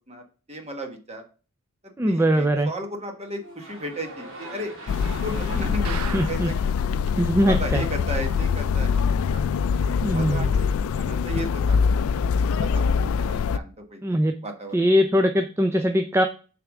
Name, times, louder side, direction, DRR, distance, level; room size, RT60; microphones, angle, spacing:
voice 1, 0.5-1.2 2.1-4.7 5.0-7.0 7.5-9.1 9.3-10.7 10.9-11.9 12.3-12.8 13.2-14.9, right 1 dB, 30° right, 3 dB, 1.3 m, -35 dB
voice 2, 2.0-2.7 6.1-6.5 7.2-7.8 10.0-10.5 14.0-14.3 14.7-16.2, equal, 10° right, 6 dB, 0.3 m, -21 dB
sound 1, 3.4-7.6, right 2 dB, 60° right, 2.0 m, -43 dB
sound 2, 4.9-13.6, left 6 dB, 65° left, 0.3 m, -24 dB
sound 3, 5.8-6.7 7.1-7.2 7.4-7.5 8.0-8.1, right 6 dB, 80° right, 0.7 m, -36 dB
6.7 x 3.4 x 6.1 m, 0.37 s
head